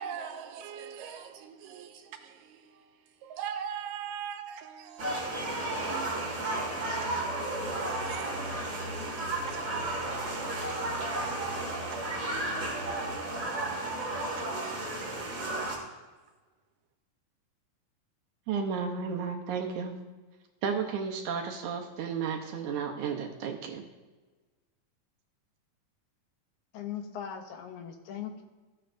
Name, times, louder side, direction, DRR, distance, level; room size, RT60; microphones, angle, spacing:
voice 1, 0.0-12.2 12.6-15.1, right 8 dB, 90° right, 2.4 m, -44 dB
sound 1, 5.0-15.8, right 2 dB, 30° right, 1.8 m, -33 dB
voice 2, 18.5-20.0 20.6-23.8, right 6 dB, 70° right, 2.1 m, -33 dB
voice 3, 26.7-28.4, left 8 dB, 75° left, 2.0 m, -39 dB
14.5 x 8.6 x 2.6 m
omnidirectional pair, 3.8 m